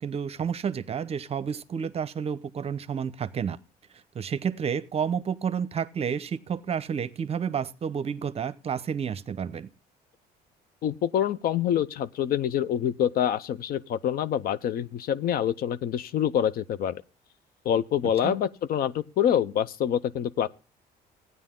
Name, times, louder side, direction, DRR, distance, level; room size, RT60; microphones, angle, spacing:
voice 1, 0.0-3.6 3.9-9.7 18.2-18.4, right 7 dB, 35° right, 0.7 m, -30 dB
voice 2, 10.8-17.0 17.6-20.5, left 9 dB, 60° left, 0.6 m, -26 dB
15.0 x 9.6 x 3.7 m
cardioid pair, 110°, 17 cm